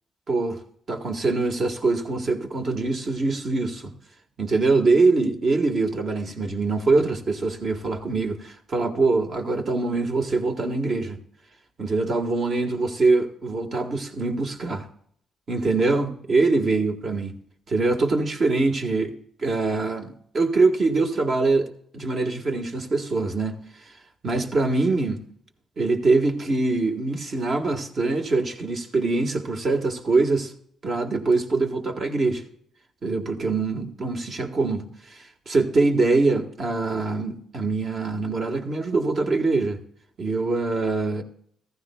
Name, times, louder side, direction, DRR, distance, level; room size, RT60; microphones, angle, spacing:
voice 1, 0.3-0.6 0.9-3.9 4.4-11.2 11.8-14.9 15.5-17.4 17.7-19.1 19.4-23.6 24.2-25.2 25.8-30.5 30.8-32.4 33.0-39.8 40.2-41.2, right 3 dB, 45° right, 1.6 m, -23 dB
15.0 x 14.5 x 2.3 m
cardioid pair, 90°, 0 cm